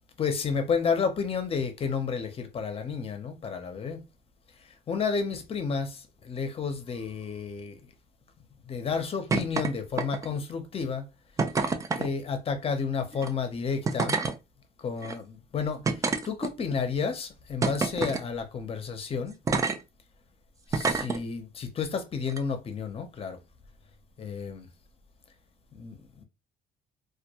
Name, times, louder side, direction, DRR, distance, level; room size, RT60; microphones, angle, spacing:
voice 1, 0.2-4.0 4.6-7.9 8.7-11.1 11.9-14.2 14.8-19.4 20.7-23.4 24.2-24.7 25.7-26.2, left 5 dB, 35° left, 0.6 m, -31 dB
sound 1, 9.3-9.7 10.0-10.4 11.4-12.1 13.1-13.3 13.8-14.3 15.0-15.1 15.8-16.7 17.6-18.2 19.5-19.8 20.7-21.2 22.3-22.4, right 4 dB, 20° right, 0.3 m, -27 dB
2.2 x 2.2 x 2.8 m
cardioid pair, 110°, 17 cm